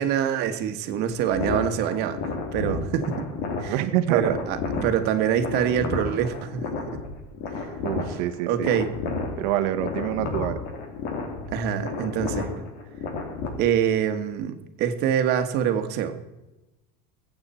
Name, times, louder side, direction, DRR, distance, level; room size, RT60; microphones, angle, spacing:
voice 1, 0.0-2.2 2.5-3.3 3.6-3.8 4.1-6.7 8.1-8.2 8.4-8.9 11.5-12.5 13.6-16.1, right 9 dB, 60° right, 8 dB, 1.7 m, -25 dB
sound 1, 1.2-13.5, left 4 dB, 65° left, 3.2 m, -32 dB
voice 2, 3.7-4.3 7.8-8.7 9.4-10.6, right 13 dB, 85° right, 9 dB, 1.3 m, -26 dB
22.5 x 8.7 x 4.4 m, 1.0 s
cardioid pair, 140°, 19 cm